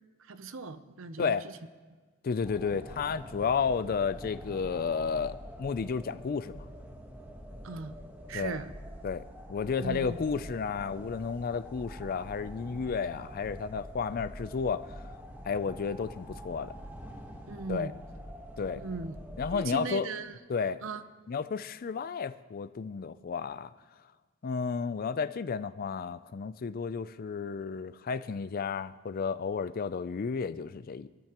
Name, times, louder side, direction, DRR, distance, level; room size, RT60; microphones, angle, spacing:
voice 1, 0.3-1.5 7.6-7.9 8.3-8.7 9.8-10.2 17.5-17.9 18.8-19.2 19.5-20.4 20.8-21.0, right 4 dB, 65° right, 0.7 m, -38 dB
voice 2, 2.2-6.6 8.3-8.6 9.0-9.2 9.5-14.9 15.5-16.7 17.7-17.9 18.6-18.8 19.4-20.1 20.5-20.8 21.3-23.7 24.4-31.1, left 5 dB, 45° left, 0.4 m, -32 dB
sound 1, 2.4-19.6, equal, 10° right, 1.2 m, -45 dB
21.0 x 13.5 x 3.0 m
head